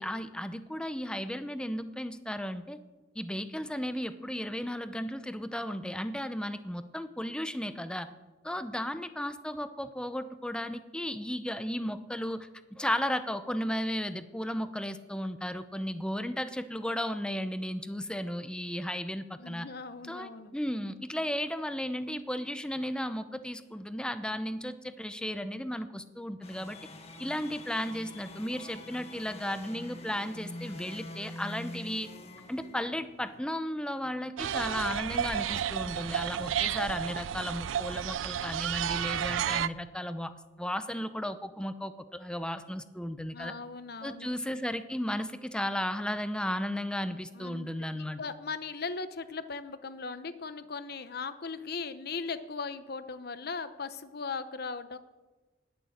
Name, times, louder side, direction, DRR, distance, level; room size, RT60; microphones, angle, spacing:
voice 1, 0.0-2.8 3.2-8.1 8.4-19.7 20.1-26.8 27.2-32.1 32.5-40.3 40.6-43.5 44.0-48.2, equal, 5° left, 11 dB, 0.6 m, -34 dB
voice 2, 19.4-20.5 43.3-44.3 47.3-55.0, left 4 dB, 55° left, 12 dB, 0.8 m, -38 dB
sound 1, 26.4-33.4, left 1 dB, 35° left, 1.6 m, -45 dB
sound 2, 34.4-39.7, right 9 dB, 90° right, 0.4 m, -32 dB
19.5 x 6.9 x 7.8 m, 1.2 s
head